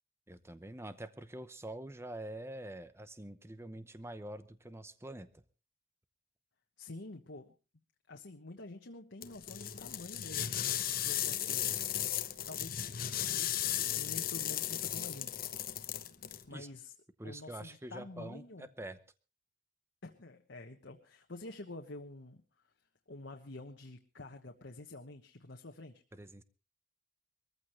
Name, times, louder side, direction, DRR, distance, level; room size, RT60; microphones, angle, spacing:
voice 1, 0.3-5.3 16.5-16.7 17.2-19.0 26.1-26.4, right 1 dB, 15° right, 12 dB, 0.9 m, -45 dB
voice 2, 6.8-7.5 8.1-10.5 10.8-11.8 12.5-12.9 13.3-15.4 16.5-16.9 17.2-18.7 20.0-22.4 23.1-26.0, left 2 dB, 90° left, 3 dB, 1.3 m, -48 dB
sound 1, 9.2-16.4, left 11 dB, 55° left, 1.0 m, -35 dB
23.0 x 15.0 x 3.2 m, 0.32 s
head